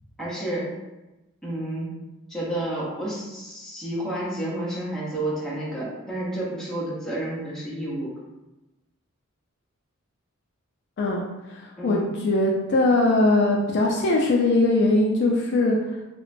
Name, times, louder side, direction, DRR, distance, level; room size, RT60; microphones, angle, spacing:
voice 1, 0.2-0.7 1.4-2.0 2.3-8.1 11.8-12.1, right 1 dB, ahead, -8 dB, 0.7 m, -30 dB
voice 2, 11.5-15.8, left 2 dB, 50° left, -1 dB, 0.3 m, -21 dB
2.9 x 2.1 x 2.5 m, 1.0 s
head